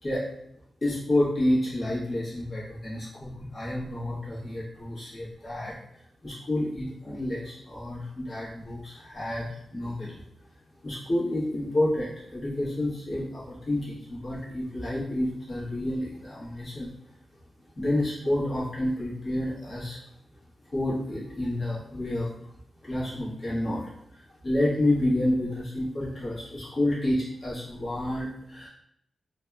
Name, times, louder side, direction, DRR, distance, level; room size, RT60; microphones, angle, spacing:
voice 1, 0.8-5.7 6.2-10.2 10.8-16.9 17.7-20.0 20.7-22.3 22.8-28.7, left 1 dB, 40° left, -8 dB, 1.1 m, -29 dB
2.7 x 2.1 x 2.3 m, 0.73 s
wide cardioid pair, 140°, 0 cm